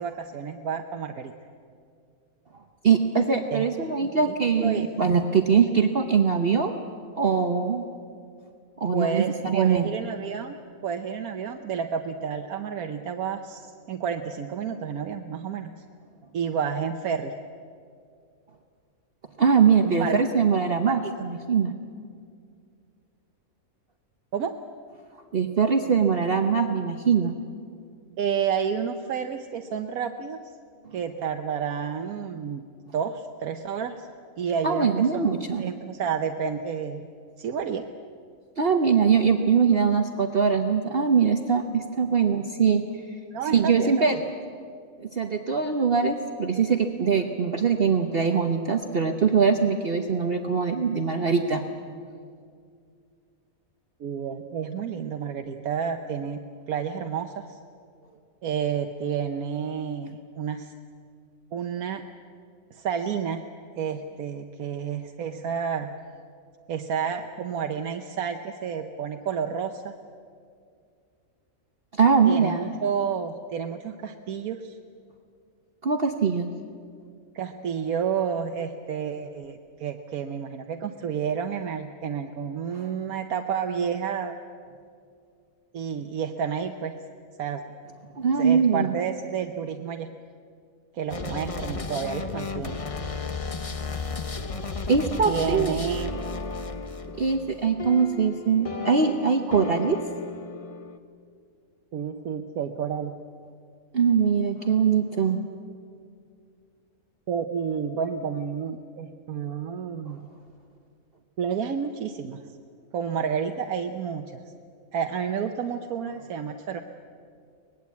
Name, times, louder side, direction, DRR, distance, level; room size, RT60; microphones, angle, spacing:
voice 1, 0.0-1.3 3.5-3.6 4.0-4.3 4.6-4.9 8.9-10.6 10.8-15.7 16.3-17.3 19.8-20.1 20.9-21.1 24.3-24.6 28.2-30.4 30.9-34.1 34.4-35.3 35.6-37.0 37.4-37.8 43.3-44.2 54.0-56.4 56.7-57.6 58.4-60.7 61.5-62.1 62.7-63.4 63.8-65.9 66.7-69.9 72.3-74.8 77.3-84.3 85.7-86.9 87.4-87.8 88.4-90.1 90.9-92.8 95.2-96.1 101.9-103.1 107.3-110.3 111.4-112.4 112.9-114.4 114.9-116.8, right 7 dB, 85° right, 5 dB, 1.3 m, -30 dB
voice 2, 2.8-6.8 7.1-7.9 8.8-9.9 19.4-21.7 25.3-27.4 34.6-35.7 38.6-42.8 43.5-44.2 45.0-51.6 71.9-72.8 75.8-76.5 82.8-82.9 88.1-88.9 94.9-95.8 97.2-100.0 103.9-105.4, right 6 dB, 45° right, 5 dB, 1.1 m, -22 dB
sound 1, 91.1-101.0, left 3 dB, 30° left, 0.9 m, -34 dB
24.0 x 19.5 x 8.4 m, 2.3 s
omnidirectional pair, 1.5 m